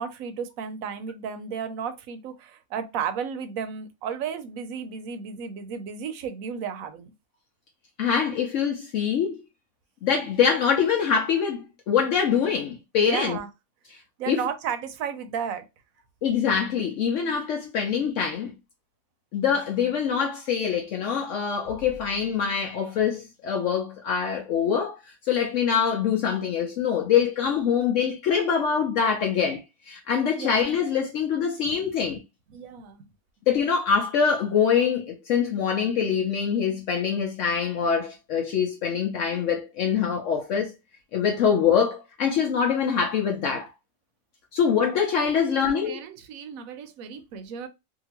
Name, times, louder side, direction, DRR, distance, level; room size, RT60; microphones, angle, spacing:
voice 1, 0.0-7.1 13.0-13.5 14.2-15.6 30.3-30.5 31.6-31.7 32.5-33.1 45.6-47.7, right 7 dB, 90° right, 1.0 m, -33 dB
voice 2, 8.0-9.4 10.0-13.4 14.3-14.4 16.2-18.5 19.3-25.0 25.3-32.2 33.5-40.7 41.1-43.7 44.5-46.0, left 7 dB, 70° left, 0.9 m, -24 dB
2.8 x 2.5 x 2.9 m
omnidirectional pair, 1.4 m